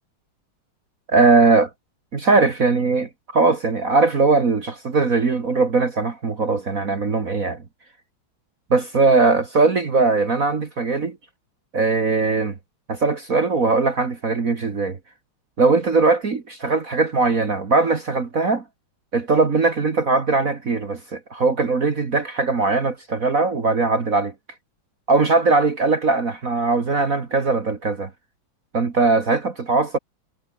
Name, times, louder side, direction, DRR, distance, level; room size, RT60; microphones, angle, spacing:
voice 1, 1.1-1.7 2.1-7.6 8.7-11.2 11.7-12.5 12.9-15.0 15.6-18.6 19.1-24.3 25.1-28.1 28.7-30.0, right 3 dB, 45° right, 2.3 m, -20 dB
omnidirectional pair, 2.2 m